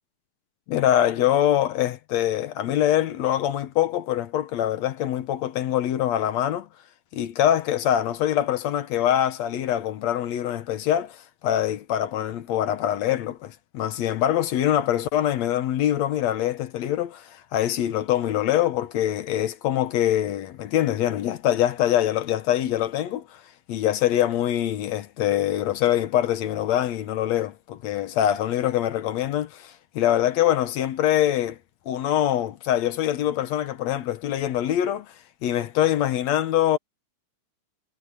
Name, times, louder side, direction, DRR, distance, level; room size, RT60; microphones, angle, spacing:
voice 1, 0.7-6.7 7.1-23.4 23.7-31.6 31.9-35.1 35.4-36.8, left 11 dB, 70° left, 2.1 m, -24 dB
omnidirectional pair, 3.4 m